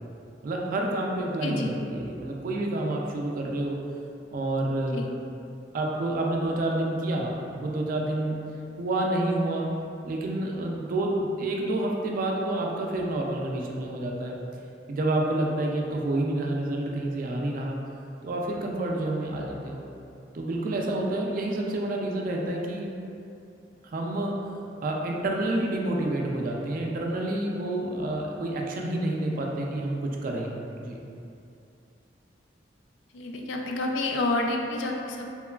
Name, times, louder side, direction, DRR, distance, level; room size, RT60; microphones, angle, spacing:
voice 1, 0.4-3.8 4.3-5.0 5.7-8.4 8.8-9.7 10.0-14.4 14.9-17.8 18.2-19.8 20.3-22.9 23.8-24.4 24.8-31.0, right 1 dB, 50° right, -1 dB, 0.3 m, -28 dB
voice 2, 1.4-1.7 4.9-5.1 33.1-35.2, left 2 dB, 85° left, 2 dB, 0.3 m, -29 dB
2.9 x 2.2 x 2.3 m, 2.6 s
head